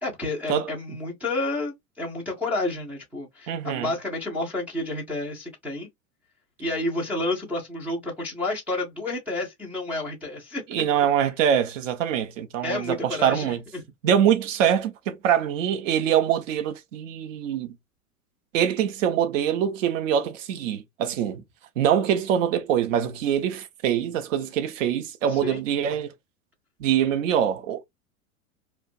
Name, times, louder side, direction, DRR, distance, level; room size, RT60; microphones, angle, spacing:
voice 1, 0.0-5.9 6.6-10.8 12.6-13.8 25.3-25.6, left 2 dB, 5° right, 0.3 m, -30 dB
voice 2, 3.5-3.9 10.7-13.6 14.0-17.7 18.5-21.4 21.8-26.1 26.8-27.8, right 9 dB, 60° right, 0.7 m, -24 dB
2.4 x 2.2 x 2.5 m
hypercardioid pair, 100°, 44 cm